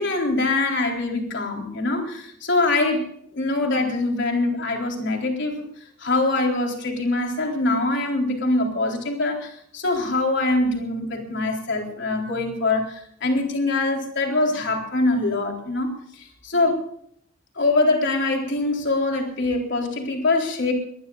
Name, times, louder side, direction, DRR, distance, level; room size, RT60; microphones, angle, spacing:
voice 1, 0.0-3.1 3.3-5.6 6.0-16.8 17.6-20.7, left 2 dB, 60° left, 2 dB, 4.0 m, -23 dB
22.0 x 21.0 x 2.5 m, 0.68 s
head